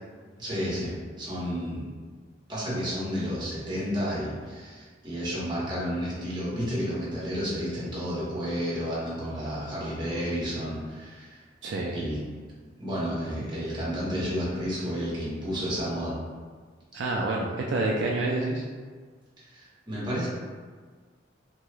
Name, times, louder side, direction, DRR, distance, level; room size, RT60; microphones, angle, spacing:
voice 1, 0.4-1.9 2.5-11.4 11.9-12.2 12.8-16.1 19.5-20.3, equal, 25° right, -8 dB, 1.0 m, -31 dB
voice 2, 11.6-12.0 16.9-18.6, right 2 dB, 70° right, -2 dB, 0.3 m, -28 dB
2.9 x 2.3 x 3.2 m, 1.6 s
head